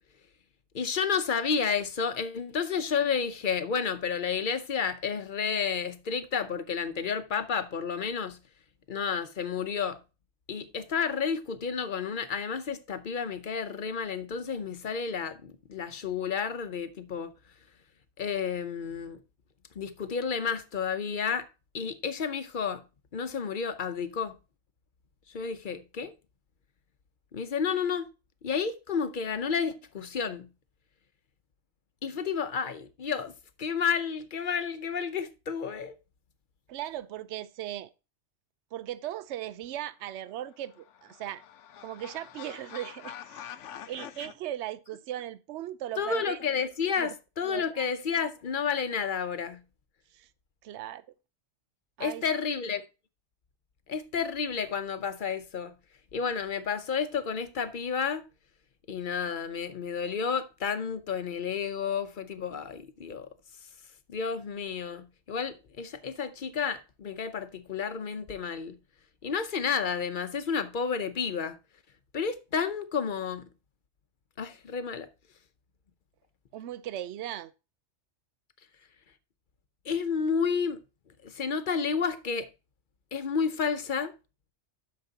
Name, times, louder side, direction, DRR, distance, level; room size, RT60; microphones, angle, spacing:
voice 1, 0.7-8.4 8.9-10.0 10.5-17.3 18.2-19.2 19.8-21.5 21.7-22.8 23.1-24.3 25.3-26.1 27.3-28.1 28.4-30.5 32.0-33.3 33.6-35.9 46.0-49.6 52.0-52.8 53.9-55.7 56.1-58.2 58.9-63.3 64.1-68.8 69.2-71.6 72.1-73.5 74.4-75.1 79.9-80.8 81.2-82.5 83.1-84.1, left 6 dB, 50° left, 0.8 m, -31 dB
voice 2, 36.7-37.9 38.7-41.4 41.8-43.5 43.9-46.4 47.0-47.1 47.4-47.9 50.1-50.3 50.6-51.0 52.0-52.2 76.5-77.5, right 12 dB, 75° right, 0.9 m, -38 dB
sound 1, 40.5-44.3, left 10 dB, 90° left, 1.0 m, -45 dB
11.5 x 6.6 x 2.8 m
omnidirectional pair, 1.2 m